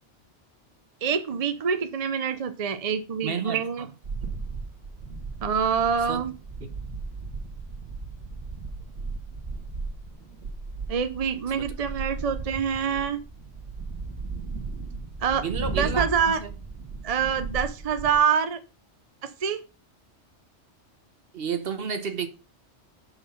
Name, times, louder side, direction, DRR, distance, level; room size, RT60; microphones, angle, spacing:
voice 1, 1.0-3.9 5.4-6.3 10.9-13.2 15.2-16.4 17.0-18.6 19.2-19.6, right 7 dB, 40° right, 0.6 m, -26 dB
voice 2, 3.2-3.9 6.1-6.2 11.6-11.7 15.3-16.5 21.3-22.3, right 6 dB, 55° right, 1.1 m, -31 dB
sound 1, 4.0-18.2, right 4 dB, 80° right, 1.7 m, -36 dB
5.7 x 5.5 x 5.7 m
omnidirectional pair, 1.2 m